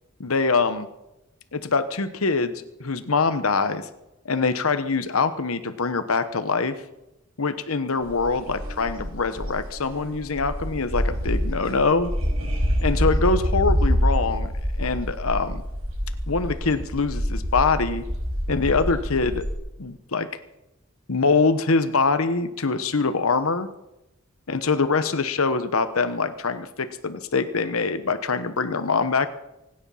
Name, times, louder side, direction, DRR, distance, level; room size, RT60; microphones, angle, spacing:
voice 1, 0.2-0.9 1.5-3.9 4.2-6.7 7.4-12.1 12.8-14.5 14.8-15.6 16.3-18.0 18.5-19.4 19.8-20.3 21.1-23.7 24.5-29.3, left 4 dB, 90° left, 10 dB, 1.1 m, -24 dB
sound 1, 8.0-19.5, equal, 80° right, 5.3 m, -26 dB
25.0 x 10.0 x 5.7 m, 0.93 s
head